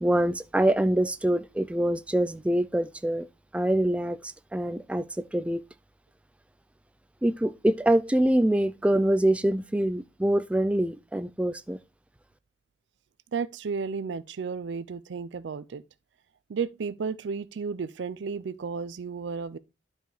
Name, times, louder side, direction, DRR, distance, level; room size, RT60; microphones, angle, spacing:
voice 1, 0.0-3.3 3.5-5.1 5.3-5.6 7.2-11.8, right 1 dB, 5° right, 0.3 m, -25 dB
voice 2, 13.3-15.8 16.5-19.6, right 5 dB, 80° right, 0.4 m, -33 dB
11.5 x 4.8 x 3.1 m
head